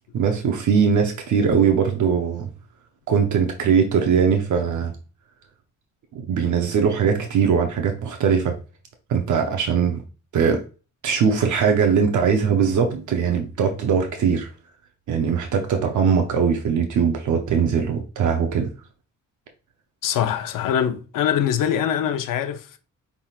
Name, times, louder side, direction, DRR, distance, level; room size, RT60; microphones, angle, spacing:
voice 1, 0.1-2.5 3.1-4.9 6.1-8.6 9.1-10.0 10.3-10.6 11.0-14.5 15.1-18.7, right 6 dB, 65° right, 0.7 m, -20 dB
voice 2, 20.0-22.8, left 9 dB, 80° left, 0.7 m, -23 dB
5.6 x 3.5 x 2.4 m
cardioid pair, 140°, 32 cm